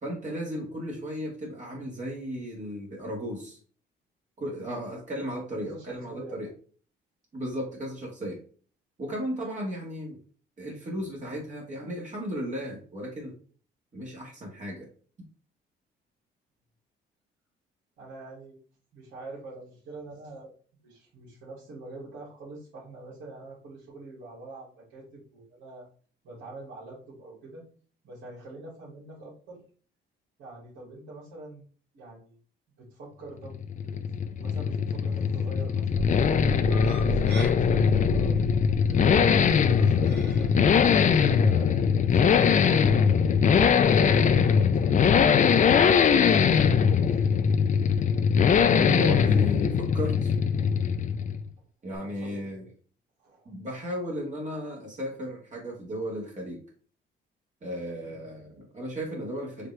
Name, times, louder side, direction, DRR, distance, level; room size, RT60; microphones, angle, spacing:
voice 1, 0.0-3.6 4.4-6.5 7.3-8.4 9.0-10.2 10.6-13.3 13.9-14.9 48.7-50.3 51.8-52.6 53.5-56.6 57.6-59.7, equal, 40° right, -2 dB, 1.8 m, -35 dB
voice 2, 5.6-6.5 18.0-18.6 18.9-20.5 20.8-25.9 26.2-27.6 28.0-29.6 30.4-31.6 31.9-32.4 32.8-33.6 33.8-34.0 34.4-38.5 38.9-39.3 39.8-47.2 52.0-52.7 53.2-53.5 58.0-58.1, right 2 dB, 75° right, -7 dB, 2.4 m, -45 dB
sound 1, 33.5-51.5, left 6 dB, 40° left, 0.4 m, -21 dB
sound 2, 35.9-44.3, right 1 dB, 60° right, 1.8 m, -37 dB
5.0 x 3.0 x 3.3 m, 0.43 s
cardioid pair, 90°, 20 cm